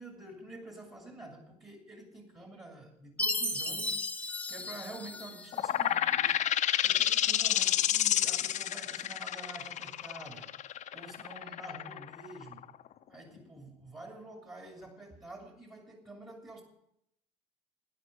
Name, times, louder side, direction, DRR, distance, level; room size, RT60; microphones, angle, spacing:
voice 1, 0.0-6.4 6.8-10.5 10.9-12.7 13.1-16.6, right 1 dB, 20° right, 2 dB, 2.6 m, -48 dB
Chime, 3.2-5.6, left 1 dB, 10° left, 1.0 m, -34 dB
sound 1, 5.5-12.9, left 11 dB, 45° left, 0.7 m, -29 dB
13.0 x 10.5 x 6.1 m, 0.76 s
supercardioid pair, 105°, 17 cm